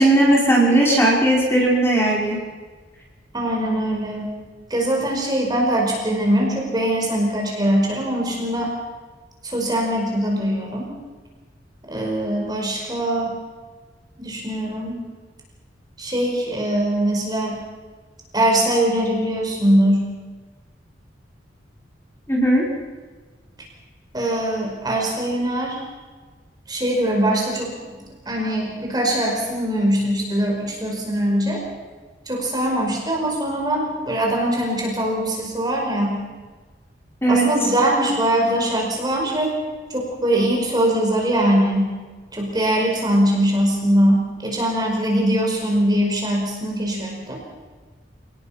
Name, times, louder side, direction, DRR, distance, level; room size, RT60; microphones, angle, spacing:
voice 1, 0.0-2.4 22.3-22.6 37.2-37.5, right 1 dB, 15° left, -3 dB, 5.3 m, -17 dB
voice 2, 3.3-4.3 4.7-8.7 9.4-10.9 11.8-13.4 14.2-15.0 16.0-17.6 18.3-20.1 24.1-25.8 26.7-27.9 28.2-31.6 32.3-36.2 37.3-39.5 39.9-41.9 42.3-47.4, right 1 dB, 20° right, -1 dB, 5.3 m, -22 dB
28.0 x 19.0 x 5.9 m, 1.4 s
head